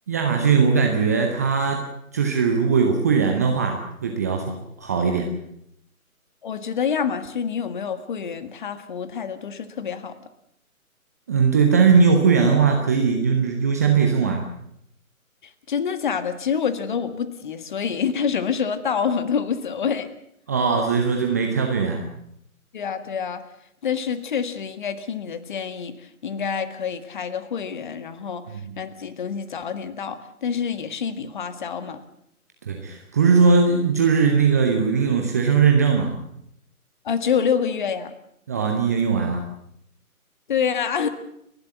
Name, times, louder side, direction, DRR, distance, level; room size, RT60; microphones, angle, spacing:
voice 1, 0.1-5.3 11.3-14.4 20.5-22.0 28.5-28.6 32.7-36.2 38.5-39.5, right 5 dB, 10° right, 3 dB, 0.7 m, -20 dB
voice 2, 6.4-10.2 15.7-20.1 22.7-23.4 23.8-28.4 28.8-32.0 37.0-38.1 40.5-41.1, left 7 dB, 35° left, 11 dB, 1.7 m, -27 dB
30.0 x 11.5 x 8.3 m, 0.74 s
figure-of-eight pair, 145°, 44 cm